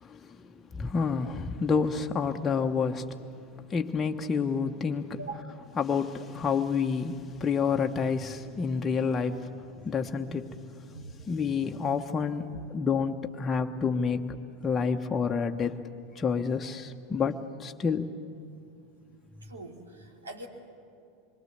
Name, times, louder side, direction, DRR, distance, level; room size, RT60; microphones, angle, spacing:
voice 1, 0.0-3.2 3.7-5.2 5.8-9.5 9.8-10.5 11.3-14.4 14.6-15.8 16.2-18.1, left 5 dB, 20° left, 4 dB, 1.1 m, -29 dB
voice 2, 19.4-20.5, right 3 dB, 80° right, 0 dB, 2.7 m, -42 dB
26.5 x 23.5 x 8.0 m, 2.5 s
figure-of-eight pair, 80°, 0 cm